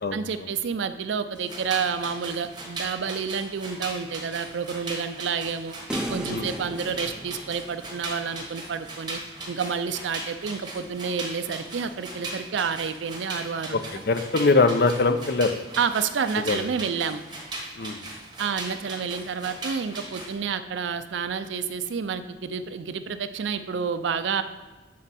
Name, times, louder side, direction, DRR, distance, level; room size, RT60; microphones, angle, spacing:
voice 1, 0.1-5.7 6.1-9.2 9.5-13.8 15.8-17.2 18.4-24.4, right 6 dB, 75° right, 11 dB, 0.4 m, -29 dB
sound 1, 1.3-20.3, right 2 dB, 25° right, 1.2 m, -38 dB
sound 2, 5.9-8.3, equal, 5° right, 0.5 m, -35 dB
voice 2, 14.1-15.6 16.5-16.7 17.8-18.0, left 3 dB, 55° left, 9 dB, 0.5 m, -22 dB
7.4 x 4.4 x 4.1 m, 1.3 s
head